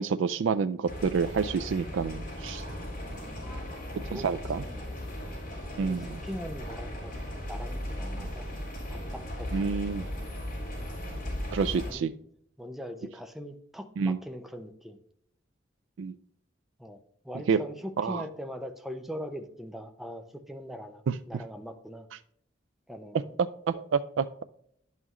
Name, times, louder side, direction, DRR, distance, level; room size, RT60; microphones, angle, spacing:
voice 1, 0.0-2.6 4.1-4.6 5.8-6.2 8.2-8.3 9.5-10.0 11.5-12.1 14.0-14.2 16.0-16.1 17.5-17.6 18.0-18.2 21.1-21.2 23.7-24.4, right 5 dB, 85° right, 11 dB, 0.3 m, -28 dB
sound 1, 0.9-11.9, left 1 dB, 45° left, 3.6 m, -37 dB
voice 2, 3.1-3.7 4.1-4.9 5.8-7.1 7.5-8.5 8.9-9.8 10.9-11.0 11.9-12.1 12.6-15.0 16.8-17.0 17.2-22.1 22.9-23.2, equal, ahead, 6 dB, 0.5 m, -41 dB
11.0 x 5.6 x 3.0 m, 0.69 s
head